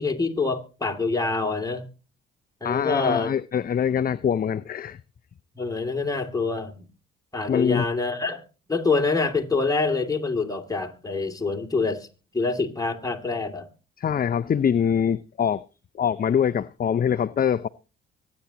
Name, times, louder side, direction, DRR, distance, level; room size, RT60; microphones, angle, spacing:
voice 1, 0.0-1.8 2.6-3.3 5.5-6.9 7.3-8.4 8.7-12.1 12.3-13.7, left 3 dB, 10° left, 2.7 m, -26 dB
voice 2, 2.6-5.0 7.5-7.8 14.0-15.6 16.0-17.7, left 8 dB, 30° left, 0.5 m, -24 dB
24.5 x 9.6 x 2.9 m
hypercardioid pair, 55°, 30 cm